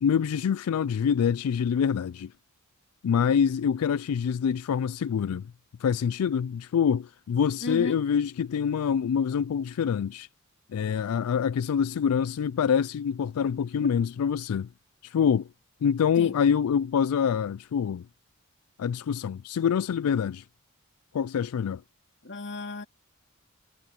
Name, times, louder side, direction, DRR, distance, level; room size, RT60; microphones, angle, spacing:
voice 1, 0.0-2.3 3.0-5.4 5.8-10.3 10.7-14.7 15.0-15.5 15.8-18.1 18.8-20.5 21.1-21.8, left 7 dB, 80° left, 0.3 m, -25 dB
voice 2, 7.6-8.0 13.8-13.9 16.2-16.4 22.2-22.9, left 2 dB, 55° left, 2.5 m, -34 dB
head